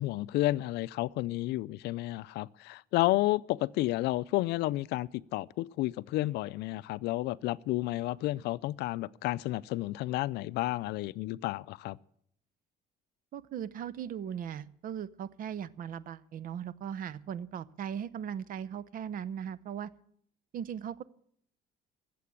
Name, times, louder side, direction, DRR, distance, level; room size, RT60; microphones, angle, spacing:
voice 1, 0.0-12.0, left 17 dB, 80° left, 0.4 m, -31 dB
voice 2, 13.3-19.9 20.5-21.0, right 8 dB, 55° right, 0.7 m, -38 dB
14.5 x 7.7 x 8.3 m
cardioid pair, 110°, 17 cm